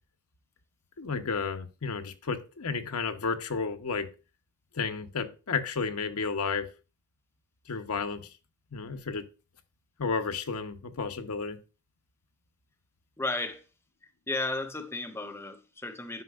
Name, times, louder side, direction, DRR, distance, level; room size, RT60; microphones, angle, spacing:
voice 1, 1.0-4.1 4.7-6.7 7.7-8.3 8.7-9.2 10.0-11.6, left 5 dB, 90° left, 0.7 m, -32 dB
voice 2, 13.2-13.6 14.0-16.2, left 2 dB, 10° left, 0.5 m, -34 dB
9.6 x 5.1 x 2.4 m
head